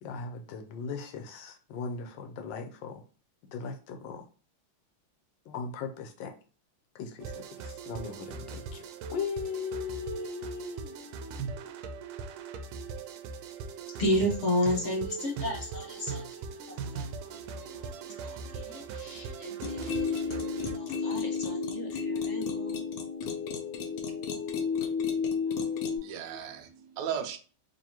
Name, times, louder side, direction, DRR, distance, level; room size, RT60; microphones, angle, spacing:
voice 1, 0.0-3.0 3.5-4.3 5.4-6.3 7.0-11.0, left 5 dB, 70° left, 1.3 m, -38 dB
sound 1, 7.2-20.8, right 5 dB, 85° right, 1.4 m, -40 dB
voice 2, 14.0-16.2 16.8-17.4 17.7-17.9 18.2-22.8, equal, 45° left, 1.0 m, -33 dB
sound 2, 19.6-26.0, left 6 dB, 90° left, 0.8 m, -32 dB
voice 3, 25.5-27.4, right 8 dB, 70° right, 1.1 m, -37 dB
4.0 x 3.0 x 2.8 m
omnidirectional pair, 2.3 m